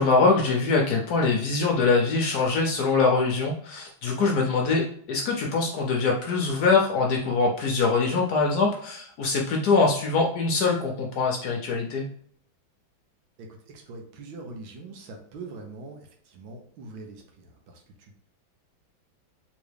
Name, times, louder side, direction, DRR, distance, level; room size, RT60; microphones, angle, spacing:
voice 1, 0.0-12.0, left 4 dB, 70° left, 0 dB, 0.9 m, -23 dB
voice 2, 13.4-18.1, right 3 dB, 80° right, 3 dB, 1.6 m, -43 dB
3.6 x 3.1 x 3.3 m, 0.63 s
omnidirectional pair, 2.1 m